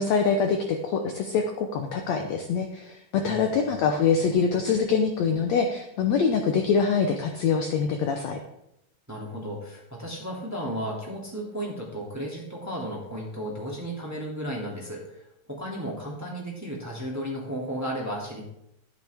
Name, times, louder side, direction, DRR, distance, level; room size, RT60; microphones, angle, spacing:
voice 1, 0.0-8.4, left 5 dB, 70° left, 5 dB, 1.7 m, -24 dB
voice 2, 3.2-3.7 9.1-18.4, equal, 5° right, -3 dB, 1.8 m, -34 dB
12.0 x 11.0 x 3.5 m, 0.81 s
omnidirectional pair, 3.9 m